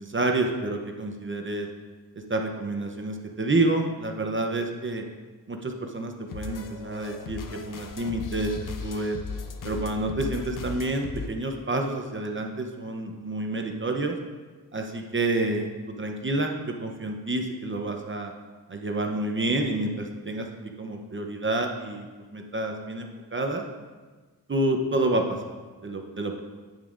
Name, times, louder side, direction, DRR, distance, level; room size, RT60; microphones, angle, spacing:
voice 1, 0.0-1.7 2.1-5.0 5.5-9.2 9.6-14.2 14.7-15.7 16.0-18.3 18.7-20.5 20.8-22.1 22.3-23.6 24.5-25.5 25.8-26.4, right 2 dB, 30° right, 3 dB, 0.8 m, -28 dB
sound 1, 6.3-11.3, left 4 dB, 55° left, 0.7 m, -37 dB
10.5 x 9.0 x 2.5 m, 1.4 s
wide cardioid pair, 110°, 39 cm